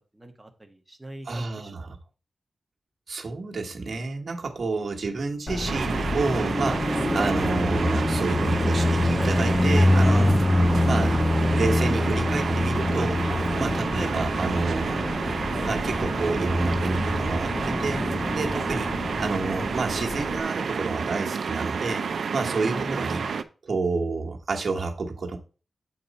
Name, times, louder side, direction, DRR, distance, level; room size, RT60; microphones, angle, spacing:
voice 1, 0.1-1.7 13.9-14.0 22.6-23.3, right 1 dB, 10° right, 4 dB, 1.0 m, -40 dB
voice 2, 1.2-2.0 3.1-11.2 11.5-13.2 13.6-15.0 15.7-18.0 18.3-23.2 23.6-25.4, right 3 dB, 50° right, 1 dB, 1.3 m, -29 dB
Car passing by, 5.5-20.4, left 1 dB, 15° left, 0.4 m, -25 dB
sound 1, 5.7-23.4, right 5 dB, 75° right, 0.5 m, -30 dB
8.2 x 4.6 x 4.1 m, 0.35 s
wide cardioid pair, 165°, 0 cm